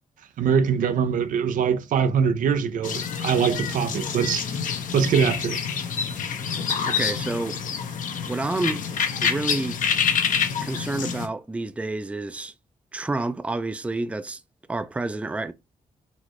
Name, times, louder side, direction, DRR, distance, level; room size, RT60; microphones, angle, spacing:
voice 1, 0.4-4.6 4.9-5.6, right 7 dB, 75° right, 0.4 m, -23 dB
sound 1, 2.8-11.3, left 7 dB, 70° left, 0.6 m, -27 dB
voice 2, 6.9-7.6 8.3-8.8 9.2-9.8 10.6-12.5 12.9-14.4 14.7-15.5, right 2 dB, 10° right, 0.3 m, -29 dB
4.0 x 2.0 x 3.0 m
cardioid pair, 60°, 14 cm